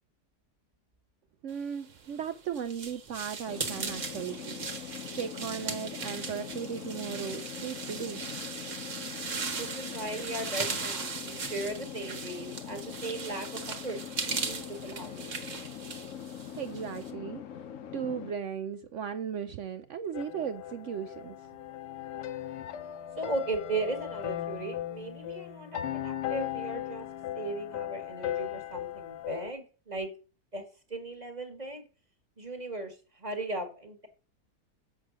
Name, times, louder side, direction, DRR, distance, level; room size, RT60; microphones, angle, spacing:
voice 1, 1.4-4.6 5.1-8.2 16.5-17.4 17.9-21.4, right 7 dB, 70° right, 0.7 m, -36 dB
sound 1, 1.9-17.1, right 5 dB, 50° right, 1.5 m, -38 dB
sound 2, 3.5-18.3, left 9 dB, 60° left, 1.0 m, -42 dB
voice 2, 9.5-14.0 14.3-15.4 23.2-27.1 27.3-30.1 30.5-30.6 30.9-31.8 32.4-34.1, right 2 dB, 25° right, 1.6 m, -37 dB
sound 3, 20.1-29.5, left 12 dB, 85° left, 1.4 m, -37 dB
7.4 x 6.4 x 6.1 m
omnidirectional pair, 1.8 m